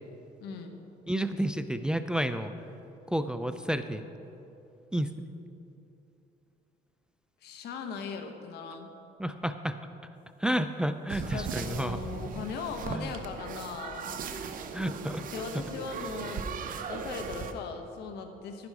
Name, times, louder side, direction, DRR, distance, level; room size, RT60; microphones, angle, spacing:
voice 1, 0.4-0.8 7.4-8.9 11.1-14.3 15.3-16.5 16.8-18.7, left 5 dB, 80° left, 6 dB, 1.2 m, -39 dB
voice 2, 1.1-2.5 3.1-4.0 4.9-5.3 9.2-9.8 10.4-12.0 12.9-13.1 14.7-15.2, right 1 dB, 5° right, 10 dB, 0.4 m, -30 dB
sound 1, 11.1-17.5, right 6 dB, 55° right, 0.8 m, -38 dB
11.5 x 10.0 x 4.8 m, 2.8 s
cardioid pair, 110°, 17 cm